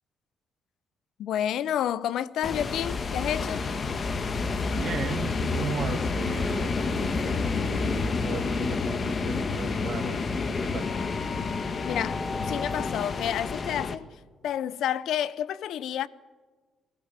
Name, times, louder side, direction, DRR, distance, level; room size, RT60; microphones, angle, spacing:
voice 1, 1.2-3.7 11.8-14.1 14.4-16.1, left 10 dB, 75° left, 0.6 m, -30 dB
sound 1, 2.4-14.0, left 4 dB, 40° left, 1.5 m, -29 dB
voice 2, 4.8-10.9, right 7 dB, 70° right, 1.5 m, -37 dB
23.0 x 17.0 x 7.4 m
cardioid pair, 90°, 0 cm